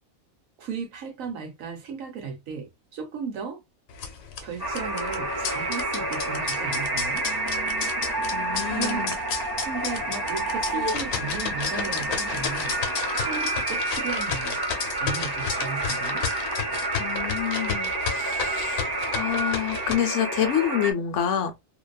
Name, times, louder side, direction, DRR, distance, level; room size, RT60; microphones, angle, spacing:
voice 1, 0.6-3.6 4.4-7.2 8.7-9.1 9.6-12.8 13.1-14.6 15.0-16.2, right 6 dB, 75° right, 1.2 m, -35 dB
sound 1, 3.9-19.9, left 6 dB, 90° left, 1.1 m, -33 dB
sound 2, 4.6-20.9, right 2 dB, 25° right, 0.5 m, -29 dB
voice 2, 8.3-9.2 17.0-21.5, left 9 dB, 70° left, 0.9 m, -28 dB
2.7 x 2.2 x 2.3 m
omnidirectional pair, 1.4 m